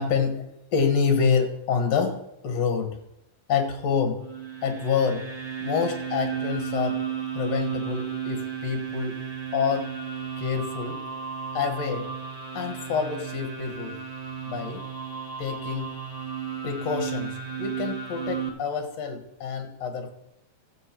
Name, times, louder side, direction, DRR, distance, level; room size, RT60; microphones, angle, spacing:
voice 1, 0.0-3.0 3.5-4.2 4.6-5.3 5.6-7.0 7.3-9.2 9.5-9.9 10.4-11.0 11.5-12.1 12.5-14.0 14.4-14.8 15.4-15.9 16.6-20.1, left 6 dB, 65° left, 7 dB, 2.6 m, -27 dB
sound 1, 4.2-18.5, right 7 dB, 50° right, 0.4 m, -34 dB
13.5 x 7.6 x 4.5 m, 0.82 s
omnidirectional pair, 3.3 m